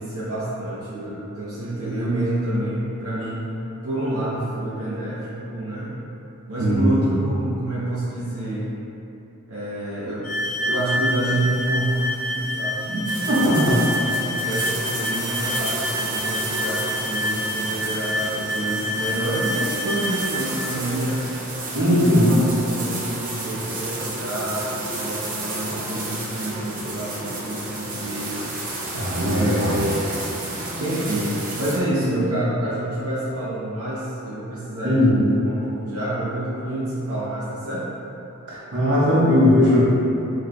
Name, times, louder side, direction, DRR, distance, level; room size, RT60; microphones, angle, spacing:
voice 1, 0.0-3.5 3.8-6.0 6.5-8.7 9.5-10.3 10.6-13.0 14.2-21.2 21.8-28.4 29.3-30.2 30.8-35.1 35.4-37.9, right 1 dB, 80° right, -10 dB, 0.8 m, -28 dB
voice 2, 6.6-7.0 12.9-13.8 21.7-22.3 28.9-29.8 34.8-35.2 38.5-39.8, left 1 dB, 55° right, -8 dB, 1.1 m, -19 dB
sound 1, 10.2-20.4, left 1 dB, 40° left, 0.8 m, -27 dB
sound 2, 13.1-31.8, right 2 dB, 40° right, 0.6 m, -31 dB
5.9 x 3.3 x 2.2 m, 3.0 s
head